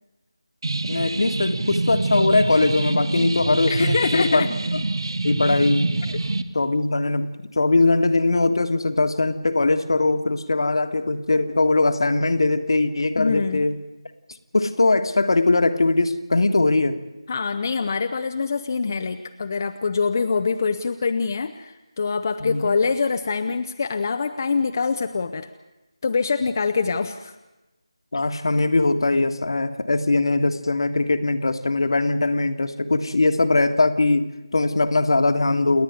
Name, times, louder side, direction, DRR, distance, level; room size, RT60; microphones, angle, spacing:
sound 1, 0.6-6.4, right 2 dB, 55° right, 1.3 m, -26 dB
voice 1, 0.8-4.4 4.7-4.8 5.2-5.9 6.5-13.8 14.5-17.0 22.4-22.6 28.1-35.8, left 2 dB, 55° left, 9 dB, 1.6 m, -21 dB
voice 2, 3.7-4.5 6.1-6.2 13.2-13.7 17.3-25.5 26.0-27.3, left 5 dB, 35° left, 7 dB, 0.8 m, -24 dB
29.0 x 10.5 x 9.5 m, 1.1 s
figure-of-eight pair, 160°, 3 cm